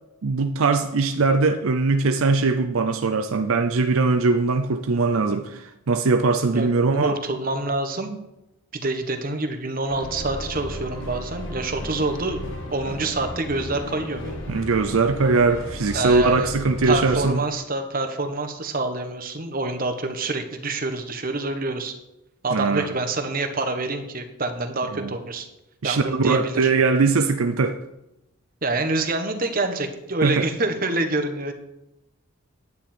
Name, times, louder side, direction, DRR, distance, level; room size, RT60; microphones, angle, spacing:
voice 1, 0.2-7.1 14.5-17.4 22.5-22.9 24.9-25.2 25.8-27.8 30.2-30.5, right 4 dB, 70° right, 0.6 m, -21 dB
voice 2, 7.0-8.2 8.7-12.4 12.7-14.4 15.9-16.5 16.8-21.9 22.4-25.5 25.8-26.7 28.6-31.5, right 2 dB, 40° right, 1.2 m, -26 dB
sound 1, 9.9-17.3, equal, 55° left, 1.7 m, -34 dB
9.8 x 9.6 x 4.4 m
head